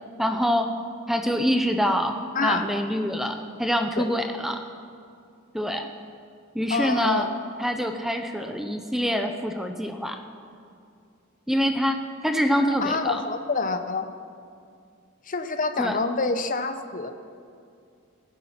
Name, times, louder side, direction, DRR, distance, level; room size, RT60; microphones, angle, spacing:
voice 1, 0.2-0.7 1.1-4.6 5.5-5.9 6.5-7.3 7.6-10.2 11.5-13.2 15.8-16.0, equal, ahead, 5 dB, 0.7 m, -25 dB
voice 2, 2.3-2.7 4.0-4.1 6.7-7.3 12.8-14.1 15.3-17.1, left 4 dB, 40° left, 8 dB, 0.8 m, -27 dB
19.5 x 9.6 x 5.8 m, 2.3 s
head